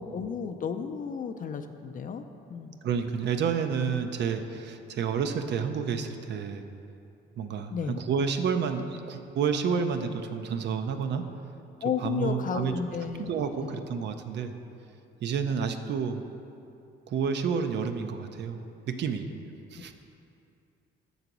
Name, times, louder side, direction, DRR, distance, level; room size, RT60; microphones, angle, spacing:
voice 1, 0.0-2.2 2.5-2.8 7.7-8.0 11.8-13.8, left 6 dB, 45° left, 7 dB, 0.4 m, -33 dB
voice 2, 2.8-6.7 7.4-11.3 12.0-12.7 13.2-14.5 15.2-16.2 17.1-18.6 18.9-19.3 19.7-19.9, right 6 dB, 60° right, 8 dB, 0.5 m, -30 dB
6.6 x 4.0 x 6.0 m, 2.7 s
cardioid pair, 90°, 20 cm